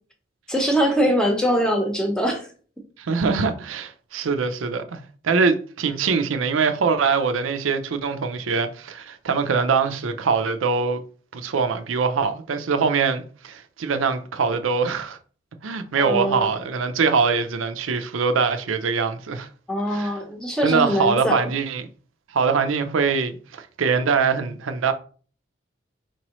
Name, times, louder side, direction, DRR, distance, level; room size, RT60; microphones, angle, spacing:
voice 1, 0.5-2.5 16.0-16.5 19.7-21.5, equal, 5° left, 0.8 m, -22 dB
voice 2, 3.0-11.0 11.3-15.2 15.6-19.5 19.9-20.1 20.6-21.9 22.3-24.9, right 5 dB, 85° right, 0.5 m, -23 dB
4.5 x 3.0 x 3.0 m
head